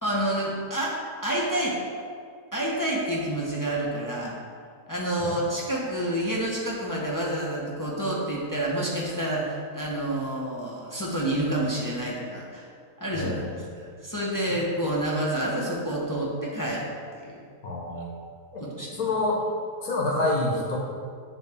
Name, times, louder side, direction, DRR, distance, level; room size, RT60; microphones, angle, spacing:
voice 1, 0.0-1.0 1.2-1.8 2.5-4.4 4.9-12.7 13.0-17.4 18.6-19.1, right 1 dB, 20° left, -5 dB, 0.5 m, -28 dB
voice 2, 13.1-13.6 17.6-18.1 18.5-18.6 18.9-19.4 19.8-20.8, left 2 dB, 85° left, -2 dB, 1.6 m, -27 dB
9.3 x 3.1 x 3.5 m, 2.2 s
omnidirectional pair, 1.5 m